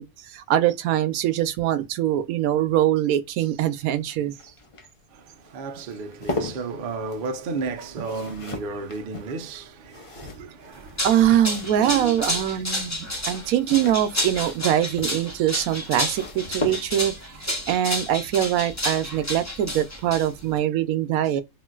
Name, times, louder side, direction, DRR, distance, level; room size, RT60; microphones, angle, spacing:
voice 1, 0.0-4.3 11.0-17.1 17.7-21.4, right 11 dB, 90° right, 1.0 m, -23 dB
sound 1, 3.4-12.2 13.4-17.3 18.9-19.2 19.5-19.6, left 2 dB, 35° left, 0.5 m, -38 dB
voice 2, 5.1-11.2 11.8-12.1 12.5-12.6 13.2-13.5 17.6-17.7, right 4 dB, 55° right, 0.6 m, -34 dB
sound 2, 10.7-20.6, left 1 dB, 15° left, 0.9 m, -30 dB
3.7 x 2.4 x 2.3 m
omnidirectional pair, 1.5 m